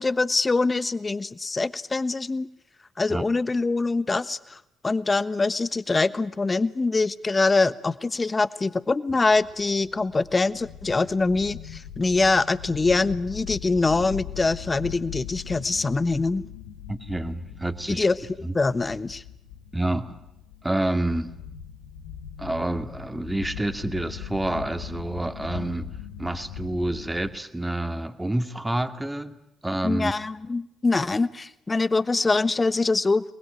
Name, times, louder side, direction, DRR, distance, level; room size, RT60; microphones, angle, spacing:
voice 1, 0.0-2.5 3.0-16.4 17.9-19.2 29.8-33.2, left 3 dB, 30° left, 15 dB, 1.2 m, -24 dB
sound 1, 9.3-27.3, left 9 dB, 85° left, 1.5 m, -40 dB
voice 2, 16.9-18.0 18.4-18.5 19.7-20.2 20.6-21.3 22.4-25.9 26.2-29.4 29.6-30.1, right 1 dB, 10° right, 7 dB, 2.2 m, -28 dB
28.0 x 20.5 x 9.1 m, 0.83 s
hypercardioid pair, 45°, 0 cm